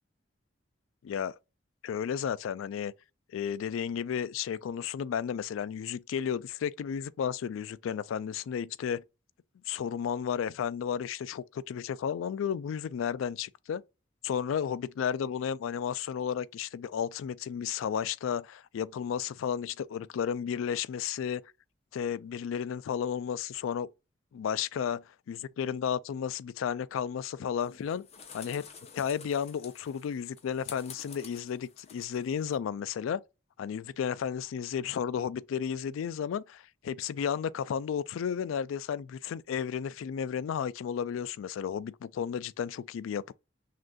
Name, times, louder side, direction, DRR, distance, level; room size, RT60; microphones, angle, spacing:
voice 1, 1.8-2.9 3.3-9.0 9.7-13.8 14.2-21.4 21.9-23.9 24.3-25.0 25.3-28.1 28.3-28.6 28.9-33.2 33.6-43.3, left 8 dB, 85° left, 0.3 m, -33 dB
sound 1, 27.6-32.6, left 6 dB, 35° left, 0.7 m, -50 dB
6.3 x 2.5 x 2.3 m
head